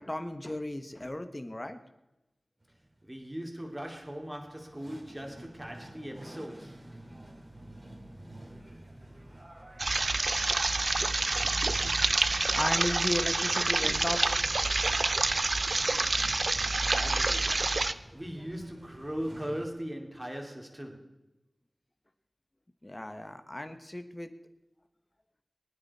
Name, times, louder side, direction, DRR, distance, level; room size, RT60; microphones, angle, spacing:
voice 1, 0.0-1.8 12.5-14.4 22.8-24.3, left 1 dB, 25° left, 1.4 m, -35 dB
sound 1, 2.6-19.7, right 1 dB, 35° right, 2.8 m, -49 dB
voice 2, 3.0-6.9 16.8-17.8 18.1-21.2, equal, 15° right, 2.9 m, -39 dB
sound 2, 9.8-17.9, right 3 dB, 60° right, 0.6 m, -27 dB
22.5 x 9.8 x 4.3 m
wide cardioid pair, 50°, 0 cm